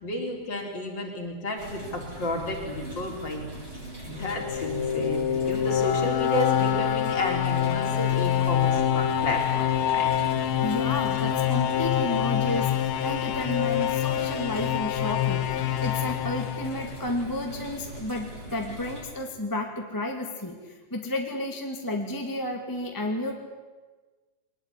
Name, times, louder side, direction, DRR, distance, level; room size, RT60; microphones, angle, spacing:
voice 1, 0.0-3.5 4.1-10.1, left 1 dB, 35° left, 1 dB, 4.6 m, -32 dB
sound 1, 1.6-19.0, equal, 30° right, 8.2 m, -40 dB
sound 2, 4.2-17.2, left 10 dB, 70° left, 1.3 m, -26 dB
voice 2, 10.6-12.8 13.0-23.3, left 1 dB, 10° left, 2 dB, 1.7 m, -32 dB
23.0 x 20.0 x 10.0 m, 1.3 s
omnidirectional pair, 3.7 m